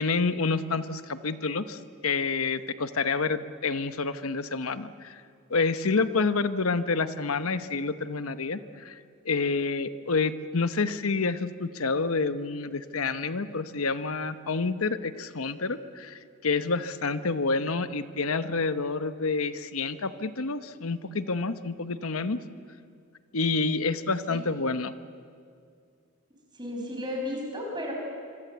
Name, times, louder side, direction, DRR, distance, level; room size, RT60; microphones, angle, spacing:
voice 1, 0.0-5.2 5.5-9.0 9.2-22.4 23.3-24.9, left 4 dB, 85° left, 11 dB, 1.0 m, -28 dB
voice 2, 26.5-27.9, left 1 dB, 20° right, 0 dB, 5.9 m, -33 dB
26.5 x 25.0 x 8.1 m, 2.3 s
head